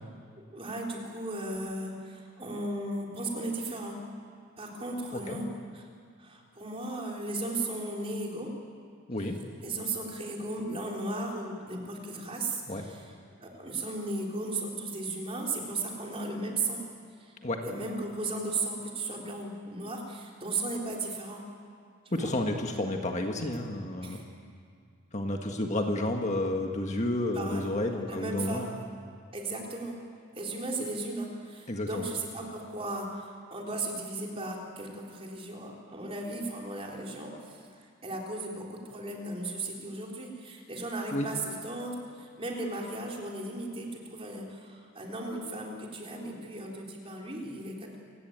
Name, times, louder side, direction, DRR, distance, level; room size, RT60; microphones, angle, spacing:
voice 1, 0.5-4.0 4.6-5.5 5.7-5.9 6.2-8.5 9.6-13.1 13.4-16.8 17.2-17.4 17.6-21.4 22.1-22.3 24.0-24.2 27.3-27.7 28.0-28.9 29.3-29.9 30.4-48.0, right 2 dB, 25° right, -1 dB, 3.9 m, -36 dB
voice 2, 22.1-24.2 25.1-28.7 31.7-32.0 41.1-41.3, left 1 dB, 30° left, 3 dB, 1.6 m, -31 dB
27.5 x 17.5 x 9.1 m, 2.2 s
head